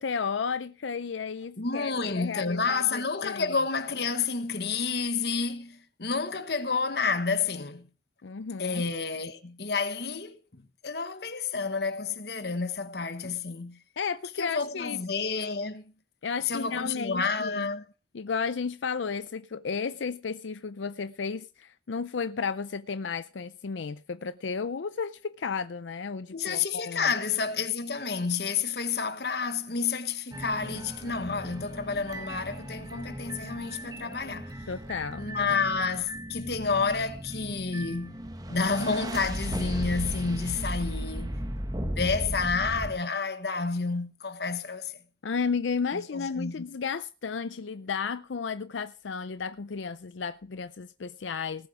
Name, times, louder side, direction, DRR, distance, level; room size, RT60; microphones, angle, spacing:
voice 1, 0.0-3.5 8.2-8.8 14.0-15.0 16.2-17.7 18.1-27.1 34.7-35.2 45.2-51.7, left 5 dB, 85° left, 0.5 m, -33 dB
voice 2, 1.6-7.9 8.6-13.8 14.4-15.9 16.5-17.8 26.3-34.5 35.2-38.2 38.5-41.4 41.8-44.9 45.9-46.6, left 4 dB, 60° left, 1.2 m, -30 dB
sound 1, 30.3-42.9, equal, 20° right, 1.4 m, -36 dB
19.0 x 7.8 x 4.9 m
head